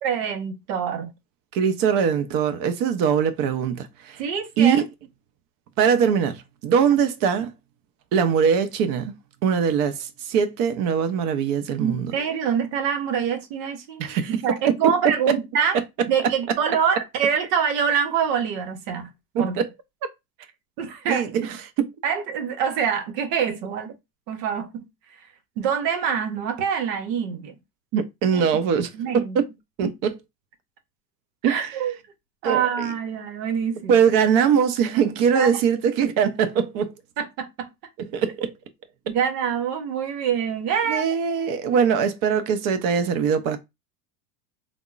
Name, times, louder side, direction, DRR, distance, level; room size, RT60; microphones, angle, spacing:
voice 1, 0.0-1.1 4.2-4.8 11.8-15.8 16.1-19.1 19.4-19.6 20.8-21.5 22.0-23.9 24.3-24.8 25.6-27.6 28.3-28.6 28.9-29.4 29.8-29.9 31.4-32.0 32.4-34.0 34.9-35.5 37.2-37.7 39.1-41.1, right 7 dB, 70° right, 0.9 m, -25 dB
voice 2, 1.5-4.2 4.6-4.8 5.8-7.5 8.1-9.1 9.4-12.1 14.0-14.4 15.3-15.4 19.3-19.7 21.1-21.5 21.8-21.9 27.9-28.9 29.1-29.3 29.8-30.1 31.4-31.8 32.4-32.9 33.9-36.9 38.0-38.5 40.9-43.6, right 7 dB, 40° right, 0.6 m, -22 dB
3.5 x 2.0 x 2.4 m
hypercardioid pair, 105°, 50 cm